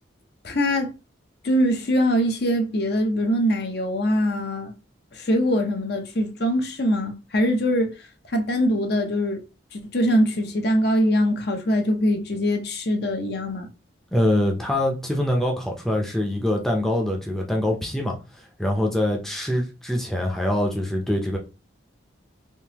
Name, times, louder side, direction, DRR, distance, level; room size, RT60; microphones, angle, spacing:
voice 1, 0.4-0.9 1.4-4.7 5.1-7.9 8.3-9.4 9.7-13.7, equal, 55° left, 0.7 m, -22 dB
voice 2, 14.1-21.4, left 1 dB, ahead, 0.6 m, -24 dB
3.6 x 2.8 x 2.8 m
head